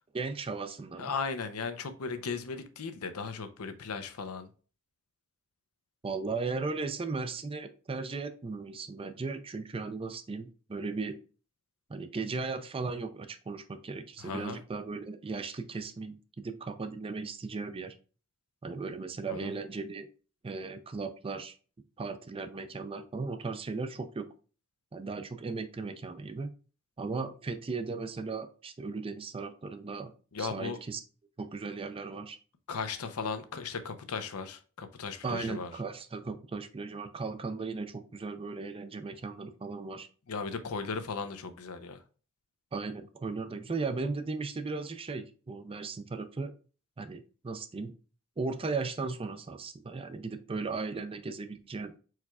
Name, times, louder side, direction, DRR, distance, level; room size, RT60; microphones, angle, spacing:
voice 1, 0.1-1.1 6.0-11.2 11.9-18.0 18.6-20.1 20.4-21.5 22.0-24.3 24.9-26.5 27.0-30.1 30.4-31.0 31.4-32.4 35.2-40.1 42.7-46.5 47.0-47.9 48.4-51.9, right 4 dB, 25° right, 0.4 m, -36 dB
voice 2, 1.0-4.5 14.2-14.6 19.3-19.5 30.3-30.8 32.7-35.7 40.3-42.0, left 5 dB, 85° left, 0.6 m, -36 dB
4.7 x 4.5 x 2.3 m
head